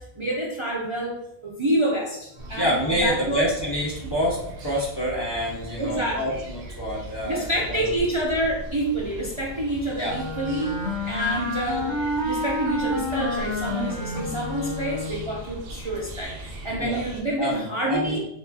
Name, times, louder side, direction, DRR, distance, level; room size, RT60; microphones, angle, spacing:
voice 1, 0.0-3.5 5.8-6.4 7.2-12.0 12.2-18.2, right 1 dB, 40° right, -4 dB, 0.5 m, -28 dB
sound 1, 2.4-17.2, right 2 dB, 70° right, 0.8 m, -39 dB
voice 2, 2.5-7.8 9.9-10.2 16.8-17.0 17.4-18.2, equal, 30° left, -4 dB, 0.6 m, -27 dB
Wind instrument woodwind instrument, 10.1-15.4, left 1 dB, 70° left, 1.3 m, -29 dB
4.3 x 2.4 x 2.7 m, 0.77 s
omnidirectional pair, 1.0 m